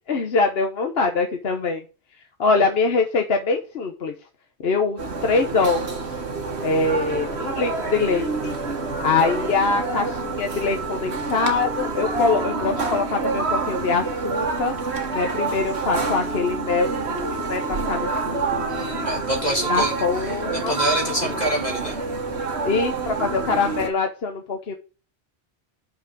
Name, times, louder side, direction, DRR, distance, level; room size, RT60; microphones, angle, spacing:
voice 1, 0.1-1.8 2.4-4.1 4.6-6.0 6.6-8.6 9.0-14.7 15.1-19.2 19.7-20.7 22.6-24.7, left 4 dB, 70° left, 4 dB, 1.2 m, -24 dB
sound 1, 5.0-23.9, right 4 dB, 85° right, 1.8 m, -27 dB
voice 2, 18.7-20.2 20.5-22.0, equal, 40° left, 0 dB, 2.1 m, -26 dB
6.1 x 6.1 x 6.8 m, 0.33 s
omnidirectional pair, 1.1 m